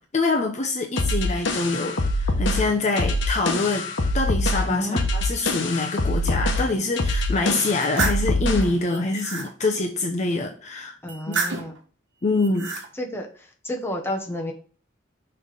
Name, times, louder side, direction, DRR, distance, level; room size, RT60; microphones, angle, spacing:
voice 1, 0.1-10.9 11.3-11.4 12.2-12.7, left 3 dB, 40° left, 3 dB, 0.7 m, -25 dB
sound 1, 1.0-8.8, left 1 dB, 65° left, 1.1 m, -24 dB
voice 2, 4.6-5.0 11.0-11.8 13.0-13.3 13.6-14.5, left 1 dB, 15° left, 1 dB, 1.0 m, -30 dB
sound 2, 7.6-8.3 8.8-9.5 11.1-11.8 12.4-12.9, right 4 dB, 65° right, 1.2 m, -29 dB
6.3 x 3.4 x 5.1 m, 0.42 s
head